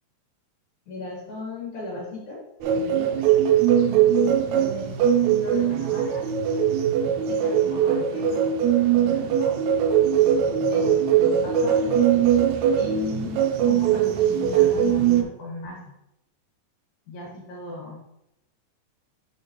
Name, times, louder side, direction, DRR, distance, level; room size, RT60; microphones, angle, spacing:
voice 1, 0.9-2.4 2.7-3.2 4.0-5.0 5.4-6.3 7.0-8.5 8.8-9.5 10.7-12.0 12.8-15.8 17.1-18.1, left 1 dB, 60° left, -2 dB, 2.8 m, -37 dB
sound 1, 2.6-15.2, right 9 dB, 90° right, 1.6 m, -21 dB
6.9 x 5.3 x 3.0 m, 0.84 s
omnidirectional pair, 4.0 m